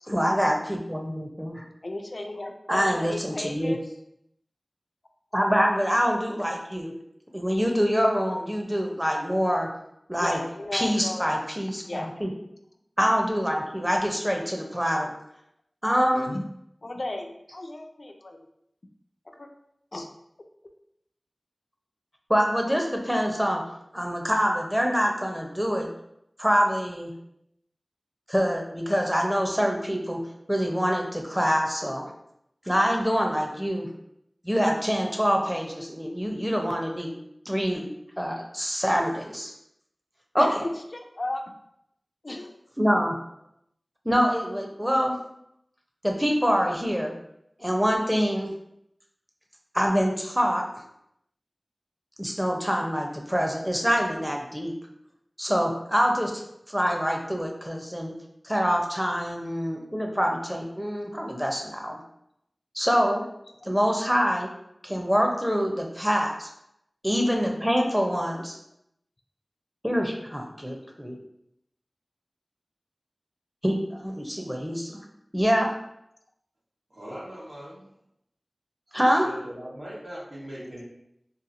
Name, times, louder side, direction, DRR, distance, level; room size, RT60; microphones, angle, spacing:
voice 1, 0.1-1.6 2.7-3.7 5.3-7.0 7.3-9.7 10.1-10.4 10.7-12.3 13.0-15.1 15.8-16.3 22.3-23.6 23.9-25.9 26.4-27.1 28.3-30.2 30.5-32.1 32.7-33.9 34.4-37.1 37.5-37.9 38.2-39.5 40.3-40.6 42.8-43.2 44.0-45.2 46.0-47.1 47.6-48.5 49.7-50.6 52.2-54.7 55.4-56.4 56.7-58.1 58.4-62.0 62.7-63.3 63.6-64.5 64.8-66.5 67.0-68.6 69.8-71.2 73.6-75.0 75.3-75.7 78.9-79.3, equal, 5° right, 1 dB, 0.5 m, -25 dB
voice 2, 1.8-3.8 10.2-11.3 11.9-12.1 16.3-16.4 16.8-18.5 19.4-19.5 19.9-20.1 40.4-41.4 42.2-42.6 70.6-70.7, left 1 dB, 70° left, 3 dB, 0.3 m, -35 dB
voice 3, 76.9-77.9 78.9-80.8, equal, 80° right, -7 dB, 1.1 m, -40 dB
2.8 x 2.6 x 2.5 m, 0.77 s
wide cardioid pair, 40°, 0 cm